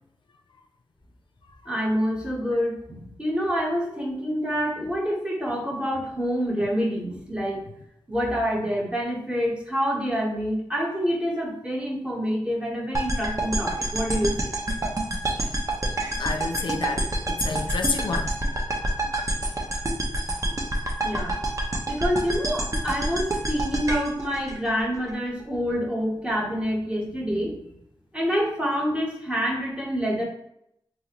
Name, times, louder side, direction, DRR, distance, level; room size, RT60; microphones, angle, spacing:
voice 1, 1.7-7.6 8.1-14.5 21.0-21.4 21.9-27.6 28.1-30.2, equal, 10° right, -2 dB, 1.1 m, -27 dB
sound 1, 12.9-25.1, right 1 dB, 40° right, 0.6 m, -28 dB
voice 2, 16.2-18.3, left 4 dB, 65° left, 5 dB, 0.4 m, -29 dB
3.9 x 2.5 x 2.9 m, 0.75 s
wide cardioid pair, 65°, 9 cm